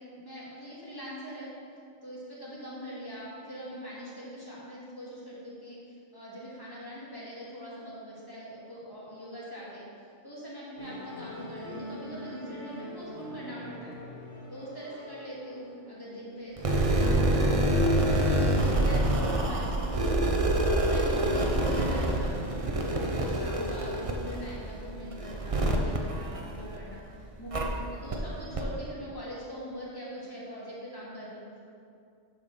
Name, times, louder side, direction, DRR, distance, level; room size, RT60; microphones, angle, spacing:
voice 1, 0.0-1.5 2.0-9.8 10.2-14.0 14.5-17.6 18.0-22.3 22.7-31.6, equal, 20° left, -8 dB, 2.4 m, -42 dB
Musical instrument, 10.8-17.4, left 1 dB, 50° left, 1.8 m, -44 dB
sound 1, 16.6-27.0 27.5-27.6 28.1-28.2 28.5-28.6, right 1 dB, 35° right, 0.6 m, -26 dB
8.9 x 4.5 x 6.3 m, 2.5 s
omnidirectional pair, 1.3 m